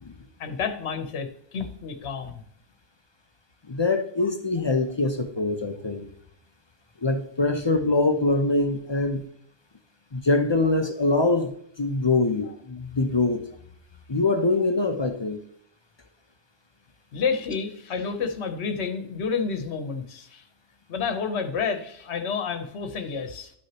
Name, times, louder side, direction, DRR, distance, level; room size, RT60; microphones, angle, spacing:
voice 1, 0.4-2.4 17.1-20.4 20.9-23.5, left 5 dB, 70° left, 1.2 m, -30 dB
voice 2, 3.7-6.0 7.0-9.3 10.1-11.5 11.8-13.4 14.1-15.4, left 2 dB, 35° left, 0.4 m, -24 dB
11.5 x 6.3 x 2.9 m
omnidirectional pair, 1.2 m